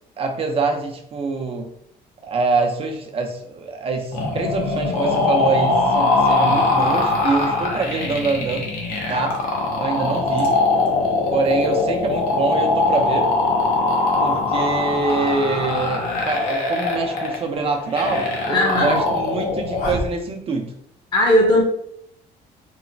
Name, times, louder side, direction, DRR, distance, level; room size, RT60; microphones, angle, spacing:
voice 1, 0.2-1.7 2.2-8.7 9.1-9.3 9.8-10.5 11.3-13.3 14.2-20.7, right 4 dB, 35° right, 3 dB, 0.5 m, -25 dB
sound 1, 4.1-20.1, left 3 dB, 60° left, 0.8 m, -21 dB
voice 2, 18.5-19.0 21.1-21.6, left 1 dB, 25° left, -2 dB, 0.8 m, -17 dB
3.0 x 2.0 x 2.6 m, 0.72 s
cardioid pair, 110°, 17 cm